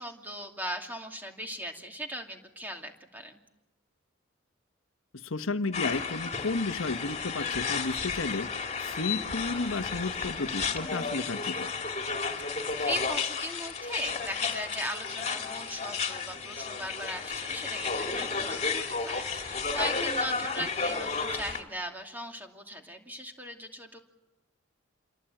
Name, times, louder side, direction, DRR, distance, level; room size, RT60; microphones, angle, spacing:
voice 1, 0.0-3.4 12.4-24.0, equal, 10° right, 3 dB, 2.6 m, -38 dB
voice 2, 5.1-8.5 8.8-11.7 20.6-20.7, left 3 dB, 80° left, 9 dB, 1.2 m, -33 dB
sound 1, 5.7-21.6, left 5 dB, 35° left, 2.5 m, -32 dB
28.0 x 23.0 x 9.0 m, 0.99 s
head